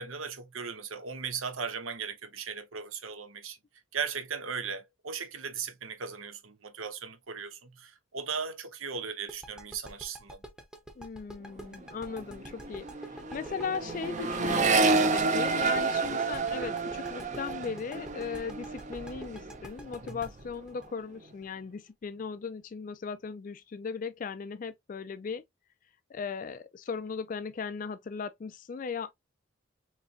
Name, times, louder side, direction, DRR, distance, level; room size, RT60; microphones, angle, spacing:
voice 1, 0.0-3.6 3.9-10.4, right 6 dB, 85° right, 0.9 m, -37 dB
sound 1, 9.3-22.0, right 1 dB, 5° right, 0.7 m, -47 dB
voice 2, 11.0-25.4 26.1-29.1, left 5 dB, 40° left, 0.3 m, -38 dB
Accelerating revving vroom, 11.6-11.8 12.1-19.6 19.9-20.5, right 3 dB, 35° right, 0.6 m, -30 dB
4.3 x 3.2 x 2.6 m
head